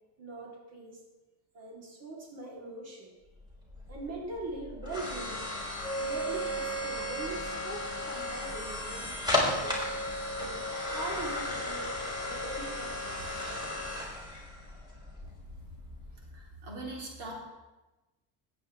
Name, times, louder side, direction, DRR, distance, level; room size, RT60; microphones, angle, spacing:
voice 1, 0.2-1.0 1.5-3.1 3.9-5.5 5.9-9.8 10.4-12.0 12.2-13.5, right 2 dB, 40° right, -3 dB, 3.3 m, -42 dB
sound 1, 3.4-16.4, left 1 dB, 10° right, 3.3 m, -35 dB
voice 2, 16.3-17.3, right 2 dB, 80° right, -3 dB, 3.6 m, -41 dB
19.5 x 8.6 x 3.4 m, 1.1 s
cardioid pair, 140°, 40 cm